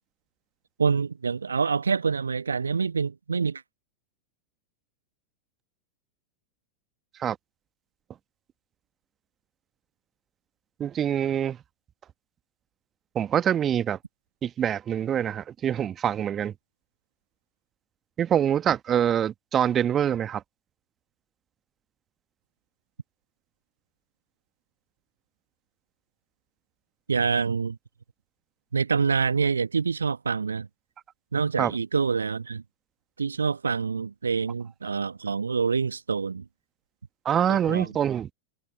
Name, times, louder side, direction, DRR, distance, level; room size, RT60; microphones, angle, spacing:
voice 1, 0.8-3.6 27.1-27.8 28.7-30.7 31.3-32.6 33.2-36.4 37.5-37.9, right 5 dB, 75° right, 1.1 m, -26 dB
voice 2, 10.8-11.6 13.1-14.0 14.4-16.5 18.2-20.4 31.6-31.7 37.2-38.3, right 9 dB, 25° right, 1.4 m, -25 dB
figure-of-eight pair, 90°, 0 cm